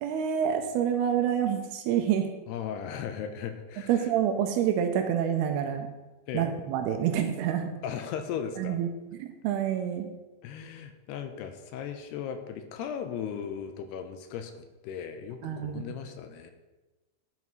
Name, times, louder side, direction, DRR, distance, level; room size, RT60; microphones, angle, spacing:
voice 1, 0.0-2.3 3.9-5.9 6.3-7.7 8.6-8.9 9.2-10.1 15.4-15.9, right 9 dB, 80° right, 5 dB, 2.5 m, -27 dB
voice 2, 2.5-4.1 6.3-6.5 7.8-8.8 10.4-16.5, left 8 dB, 80° left, 7 dB, 2.7 m, -37 dB
12.0 x 4.7 x 5.4 m, 1.1 s
omnidirectional pair, 4.9 m